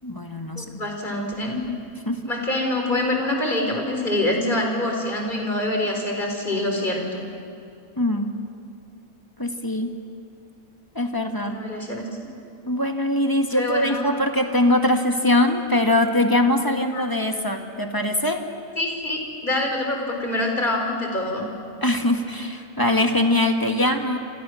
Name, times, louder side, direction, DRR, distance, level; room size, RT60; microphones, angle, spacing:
voice 1, 0.0-0.7 2.1-2.2 8.0-8.3 9.4-9.9 11.0-11.6 12.7-18.4 21.8-24.2, left 1 dB, 15° left, 4 dB, 1.8 m, -22 dB
voice 2, 0.6-1.7 2.3-7.2 11.4-12.0 13.5-14.1 16.9-17.0 18.8-21.5, left 1 dB, 35° left, 2 dB, 4.4 m, -25 dB
28.0 x 27.5 x 6.4 m, 2.5 s
omnidirectional pair, 1.5 m